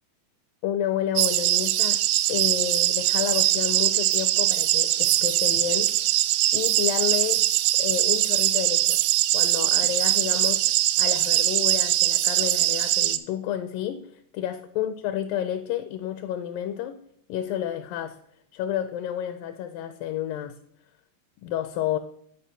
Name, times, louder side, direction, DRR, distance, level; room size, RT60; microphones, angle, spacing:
voice 1, 0.6-2.0 2.3-6.0 6.5-7.5 7.8-9.0 9.3-10.6 11.0-17.0 17.3-18.2 18.5-20.6 21.4-22.0, left 11 dB, 80° left, 9 dB, 2.0 m, -30 dB
sound 1, 1.2-13.2, right 15 dB, 80° right, 2.1 m, -22 dB
9.4 x 4.7 x 5.5 m, 0.68 s
omnidirectional pair, 4.2 m